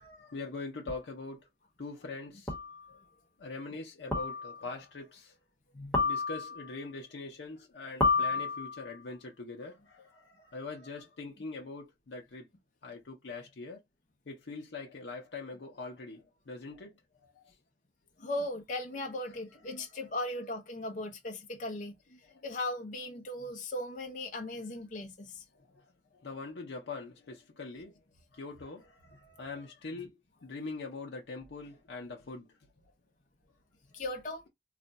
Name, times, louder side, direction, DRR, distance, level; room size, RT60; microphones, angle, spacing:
voice 1, 0.0-1.5 1.8-2.5 3.4-5.4 6.0-12.5 12.8-13.8 14.3-16.9 17.2-17.5 19.8-19.9 22.2-22.4 25.7-25.8 26.1-28.0 28.3-32.6, left 3 dB, 85° left, 0.6 m, -43 dB
sound 1, 0.9-1.0 2.5-2.8 4.1-4.7 5.9-6.7 8.0-8.9, left 4 dB, 5° left, 1.0 m, -30 dB
voice 2, 18.2-25.4 33.9-34.4, left 1 dB, 45° left, 0.6 m, -38 dB
2.4 x 2.2 x 3.9 m
head